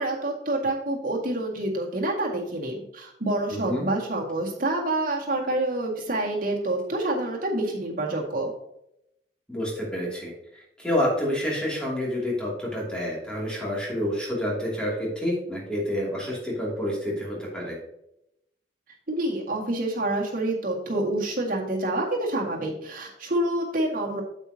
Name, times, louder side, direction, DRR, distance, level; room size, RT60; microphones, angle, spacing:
voice 1, 0.0-8.5 19.1-24.2, right 1 dB, 50° right, -2 dB, 2.0 m, -27 dB
voice 2, 3.5-3.8 9.5-10.3 10.8-17.8, left 1 dB, 5° left, -4 dB, 2.7 m, -28 dB
8.9 x 7.6 x 2.8 m, 0.81 s
head